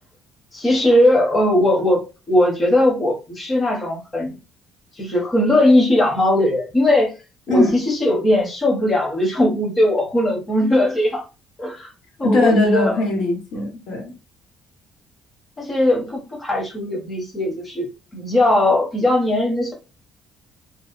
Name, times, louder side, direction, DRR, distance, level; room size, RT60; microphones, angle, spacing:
voice 1, 0.5-4.4 4.9-7.1 7.5-11.2 11.6-11.9 12.2-13.0 15.6-17.9 18.1-19.7, left 1 dB, 20° left, -1 dB, 0.7 m, -19 dB
voice 2, 12.2-14.1, left 2 dB, 70° left, 2 dB, 0.9 m, -19 dB
2.7 x 2.0 x 2.4 m, 0.30 s
cardioid pair, 170°, 0 cm